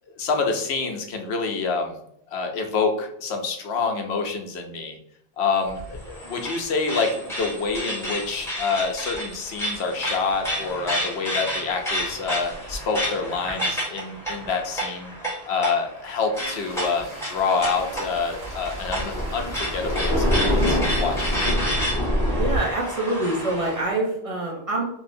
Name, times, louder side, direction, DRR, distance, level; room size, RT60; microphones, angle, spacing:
voice 1, 0.2-2.0 2.3-5.0 5.4-15.1 15.5-21.6, left 4 dB, 90° left, 3 dB, 0.9 m, -27 dB
sound 1, 5.7-23.8, equal, 5° left, 1.1 m, -31 dB
sound 2, 16.3-21.4, right 2 dB, 80° right, 1.1 m, -44 dB
Thunder, 17.6-22.6, equal, 20° right, 1.2 m, -24 dB
voice 2, 22.2-24.8, right 2 dB, 40° right, -2 dB, 0.7 m, -26 dB
3.1 x 2.7 x 2.6 m, 0.73 s
omnidirectional pair, 1.0 m